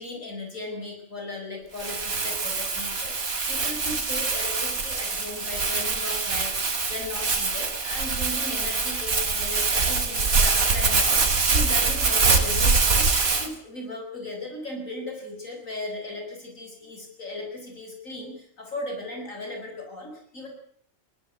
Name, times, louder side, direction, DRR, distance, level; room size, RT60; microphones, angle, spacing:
voice 1, 0.0-20.5, left 2 dB, 70° left, 3 dB, 6.8 m, -37 dB
Crumpling crinkling, 1.8-13.5, right 4 dB, 90° right, 2.9 m, -24 dB
21.5 x 18.5 x 8.1 m, 0.63 s
omnidirectional pair, 1.4 m